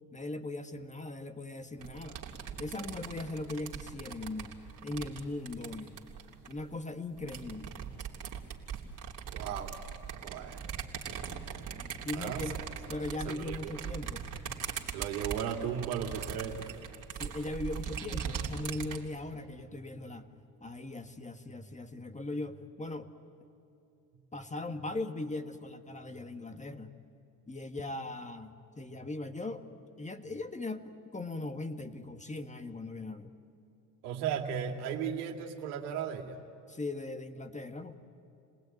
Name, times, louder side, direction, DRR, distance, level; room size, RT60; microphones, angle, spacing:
voice 1, 0.1-2.2 2.6-6.0 6.5-7.8 12.0-12.6 12.9-14.2 17.2-20.3 20.6-23.1 24.3-26.9 27.5-29.6 30.0-33.3 36.7-37.9, left 2 dB, 15° left, 8 dB, 1.7 m, -39 dB
sound 1, 1.8-6.6 7.2-19.0, right 7 dB, 40° right, 3.1 m, -40 dB
voice 2, 9.3-9.7 10.2-10.6 12.1-12.4 13.3-13.7 14.9-16.6 34.0-36.4, right 8 dB, 80° right, 3 dB, 2.6 m, -35 dB
29.5 x 19.5 x 9.4 m, 2.5 s
hypercardioid pair, 70°, 45 cm